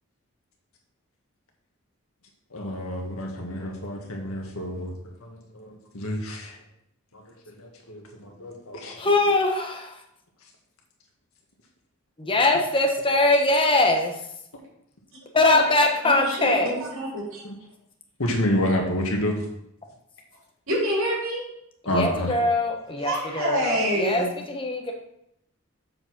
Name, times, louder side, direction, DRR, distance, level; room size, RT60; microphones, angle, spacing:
voice 1, 2.5-4.9 5.2-6.6 7.1-9.1 17.4-17.5 18.2-19.4 21.9-22.3, left 1 dB, 75° left, 0 dB, 2.0 m, -29 dB
voice 2, 9.0-10.0 12.2-14.2 15.3-16.7 21.8-24.9, left 2 dB, 25° left, 3 dB, 1.1 m, -22 dB
voice 3, 15.3-15.7 16.0-17.4 20.7-21.4 23.0-24.4, right 1 dB, 70° right, -5 dB, 3.5 m, -27 dB
7.5 x 4.9 x 5.9 m, 0.78 s
head